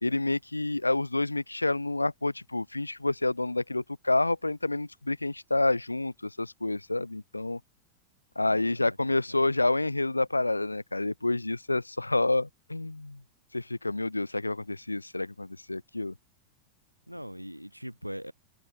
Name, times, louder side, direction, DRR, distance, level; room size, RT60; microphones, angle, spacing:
voice 1, 0.0-7.6 8.4-13.2 13.5-16.1, left 2 dB, 85° left, 0.4 m, -28 dB
voice 2, 8.4-9.0 9.3-9.6 17.1-18.3, equal, 90° right, 3.7 m, -42 dB
figure-of-eight pair, 90°, 0 cm